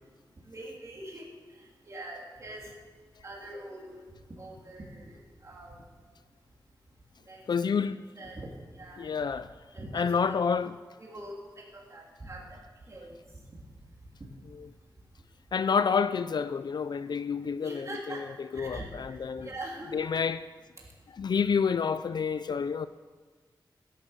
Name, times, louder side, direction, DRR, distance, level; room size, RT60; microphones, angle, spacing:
voice 1, 0.4-2.6 3.2-4.0 4.3-5.8 7.2-7.8 8.2-9.1 9.7-10.3 11.0-12.5 12.9-13.1 17.6-18.2 18.5-20.1 20.8-20.9, right 1 dB, 40° right, 3.1 m, -43 dB
voice 2, 7.5-8.0 9.0-9.5 9.9-10.7 15.5-17.9 18.6-19.5 19.9-20.4 21.2-22.9, left 6 dB, 65° left, 0.4 m, -28 dB
16.0 x 11.0 x 7.2 m
wide cardioid pair, 140°, 8 cm